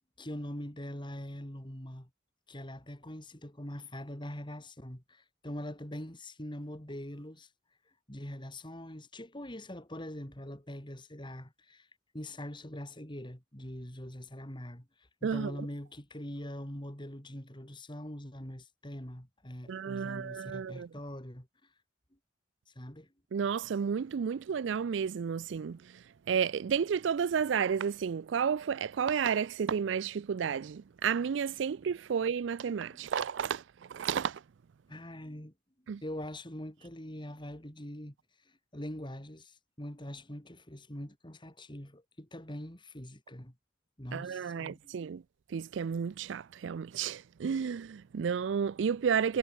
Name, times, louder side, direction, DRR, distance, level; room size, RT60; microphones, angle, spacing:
voice 1, 0.2-2.1 2.5-7.5 8.1-11.9 12.1-14.9 15.2-21.5 22.7-23.1 32.9-33.1 34.9-35.5 36.0-38.2 38.7-43.5 44.0-44.9, left 1 dB, 25° left, 3.6 m, -43 dB
voice 2, 19.7-20.9 23.3-25.8 26.3-33.6 33.9-34.4 35.9-36.0 44.1-45.2 45.5-49.4, right 7 dB, 75° right, 0.4 m, -31 dB
head